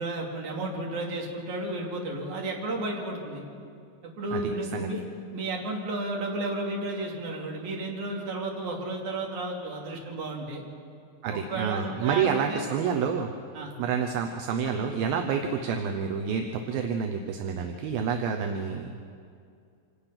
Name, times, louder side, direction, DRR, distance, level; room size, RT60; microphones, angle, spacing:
voice 1, 0.0-3.4 4.2-5.0 5.3-10.6 11.3-12.7 13.5-13.7, right 2 dB, 50° right, -1 dB, 3.7 m, -33 dB
voice 2, 11.2-13.3 13.8-18.9, right 6 dB, 75° right, 4 dB, 2.7 m, -28 dB
26.0 x 18.0 x 5.8 m, 2.4 s
omnidirectional pair, 4.4 m